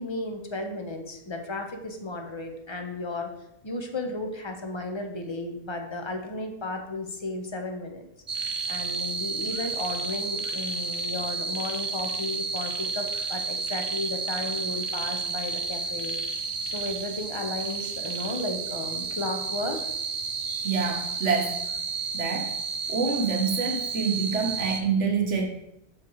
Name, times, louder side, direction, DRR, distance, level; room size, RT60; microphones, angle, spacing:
voice 1, 0.0-3.3 3.6-8.1 8.4-16.2 16.6-19.8, left 2 dB, 25° left, 4 dB, 0.8 m, -34 dB
sound 1, 8.3-24.8, right 4 dB, 40° right, 0.5 m, -31 dB
voice 2, 20.4-21.6 22.1-22.5 22.9-25.4, right 5 dB, 75° right, 1 dB, 1.5 m, -27 dB
5.7 x 5.1 x 4.6 m, 0.81 s
omnidirectional pair, 1.2 m